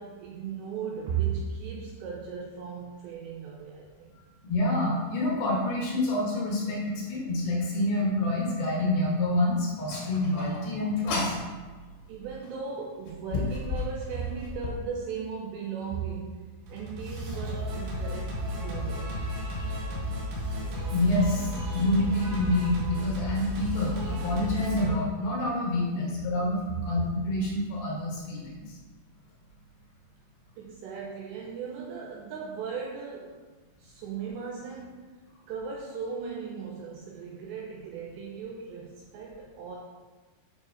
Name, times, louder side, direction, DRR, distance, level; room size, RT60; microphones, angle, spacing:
voice 1, 0.0-4.1 12.1-19.2 26.0-26.1 30.6-33.4 33.8-35.1 35.5-39.8, right 6 dB, 85° right, -1 dB, 2.5 m, -37 dB
voice 2, 4.4-11.4 20.9-28.8, left 1 dB, 70° left, -4 dB, 2.4 m, -27 dB
sound 1, 9.9-11.5 12.4-12.5 13.1-14.8, left 4 dB, 90° left, 4.2 m, -33 dB
Singing, 16.6-24.9, equal, 65° right, 3.2 m, -33 dB
9.0 x 5.8 x 2.6 m, 1.3 s
omnidirectional pair, 5.6 m